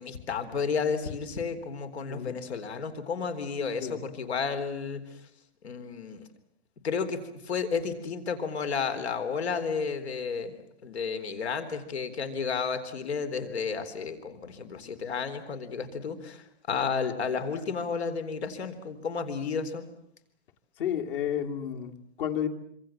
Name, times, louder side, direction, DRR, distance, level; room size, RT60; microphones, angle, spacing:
voice 1, 0.0-5.0 5.6-6.2 6.8-10.5 10.8-19.8, left 5 dB, 85° left, 10 dB, 4.1 m, -32 dB
voice 2, 2.1-2.4 3.8-4.0 20.8-22.5, left 9 dB, 55° left, 4 dB, 2.8 m, -31 dB
26.5 x 26.0 x 7.5 m, 0.71 s
hypercardioid pair, 160°, 32 cm